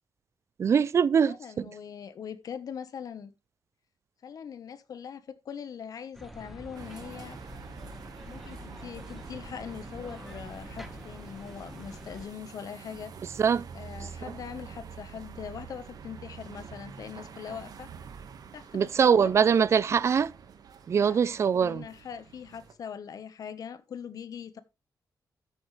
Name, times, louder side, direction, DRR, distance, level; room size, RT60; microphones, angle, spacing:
voice 1, 0.6-1.7 13.4-13.7 14.0-14.1 18.7-20.3 20.9-21.8, right 7 dB, 40° right, 0.4 m, -23 dB
voice 2, 1.2-3.3 4.2-7.4 8.3-13.1 13.7-17.9 18.5-19.3 20.9-21.2 21.5-24.6, left 7 dB, 55° left, 1.1 m, -41 dB
sound 1, 6.1-12.3, equal, ahead, 1.4 m, -46 dB
sound 2, 6.7-22.7, right 6 dB, 60° right, 1.5 m, -47 dB
13.5 x 7.2 x 3.2 m
wide cardioid pair, 155°, 7 cm